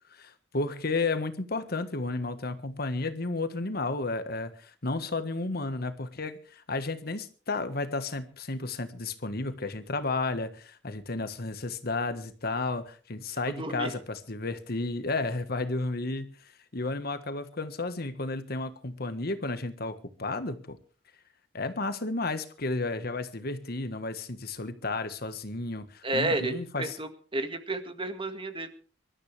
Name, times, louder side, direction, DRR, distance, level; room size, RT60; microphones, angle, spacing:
voice 1, 0.1-16.4 16.7-20.8 21.5-27.0, left 3 dB, 55° left, 10 dB, 1.5 m, -32 dB
voice 2, 13.5-13.9 26.0-28.7, right 2 dB, 30° right, 7 dB, 1.9 m, -31 dB
24.5 x 13.0 x 3.4 m, 0.40 s
head